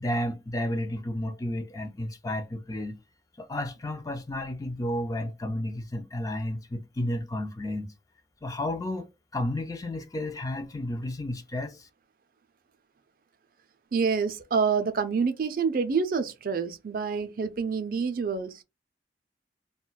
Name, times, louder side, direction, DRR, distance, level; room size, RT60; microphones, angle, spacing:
voice 1, 0.0-3.0 3.4-7.9 8.4-9.1 9.3-11.9, left 1 dB, 20° left, 0.3 m, -32 dB
voice 2, 13.9-18.6, right 5 dB, 50° right, 0.4 m, -27 dB
2.2 x 2.2 x 3.9 m
head